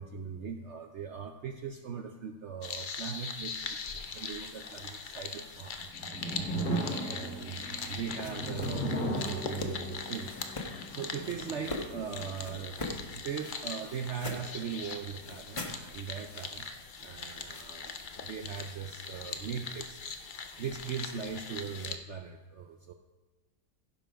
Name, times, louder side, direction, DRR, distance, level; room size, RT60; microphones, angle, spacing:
voice 1, 0.0-5.8 6.1-6.4 7.1-10.4 10.9-12.8 13.1-16.7 17.0-20.0 20.6-22.9, right 7 dB, 80° right, 6 dB, 0.6 m, -40 dB
sound 1, 2.6-22.0, left 5 dB, 70° left, 0.4 m, -41 dB
sound 2, 5.8-12.9, right 1 dB, 45° left, 2.1 m, -37 dB
sound 3, 6.7-9.8 10.2-10.7 11.2-11.9 12.4-14.5 15.2-18.7, left 2 dB, 20° left, 1.2 m, -43 dB
16.0 x 5.7 x 5.0 m, 1.2 s
omnidirectional pair, 1.8 m